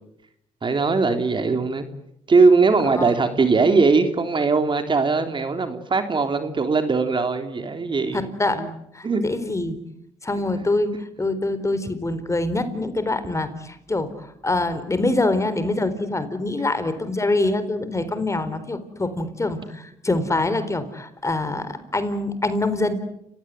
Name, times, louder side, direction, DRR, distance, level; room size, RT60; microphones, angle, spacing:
voice 1, 0.6-1.8 2.3-8.7 9.0-9.5, right 4 dB, 35° right, 8 dB, 3.3 m, -20 dB
voice 2, 8.1-8.6 8.9-9.8 10.2-22.9, left 2 dB, 20° left, 12 dB, 4.1 m, -25 dB
30.0 x 17.0 x 9.5 m, 0.76 s
supercardioid pair, 70°, 13 cm